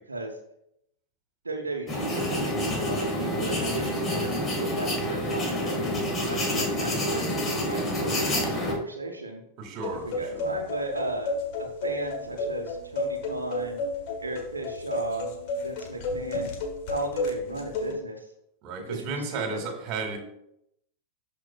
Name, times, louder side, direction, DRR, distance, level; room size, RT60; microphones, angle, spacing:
voice 1, 0.1-0.4 1.4-5.7 6.3-7.3 7.6-9.4 9.9-13.8 14.2-15.3 15.6-16.5 16.9-18.3 18.9-19.6, right 2 dB, 75° right, 1 dB, 0.9 m, -35 dB
sound 1, 1.9-8.7, equal, 20° left, 1.8 m, -28 dB
voice 2, 9.6-10.6 18.6-20.2, right 4 dB, 35° right, 4 dB, 1.8 m, -34 dB
sound 2, 9.8-17.9, left 2 dB, 45° left, 1.3 m, -32 dB
11.5 x 5.3 x 2.3 m, 0.78 s
figure-of-eight pair, 90°, 0 cm